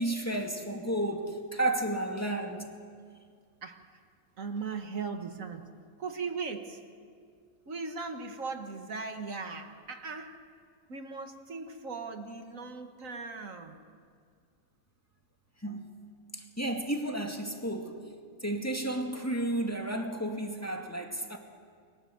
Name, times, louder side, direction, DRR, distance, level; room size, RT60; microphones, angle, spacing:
voice 1, 0.0-2.7 15.6-15.9 16.3-18.0 18.4-21.4, right 1 dB, 10° left, 2.2 m, -32 dB
voice 2, 3.6-4.0 4.4-6.8 7.7-10.5 10.9-13.8, right 4 dB, 70° right, 1.9 m, -39 dB
29.0 x 23.5 x 7.9 m
omnidirectional pair, 1.5 m